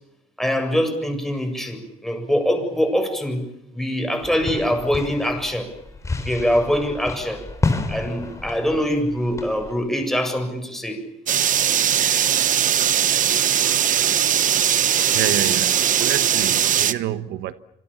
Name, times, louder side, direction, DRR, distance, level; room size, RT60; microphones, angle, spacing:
voice 1, 0.4-3.4 3.7-5.7 6.2-7.4 7.9-11.0, equal, ahead, 7.5 m, -23 dB
sound 1, 4.2-9.7, left 3 dB, 20° left, 4.7 m, -30 dB
sound 2, 11.3-16.9, right 9 dB, 50° right, 1.2 m, -19 dB
voice 2, 15.1-15.7 16.0-17.5, right 12 dB, 80° right, 1.2 m, -27 dB
26.5 x 26.5 x 7.3 m
cardioid pair, 110°, 17 cm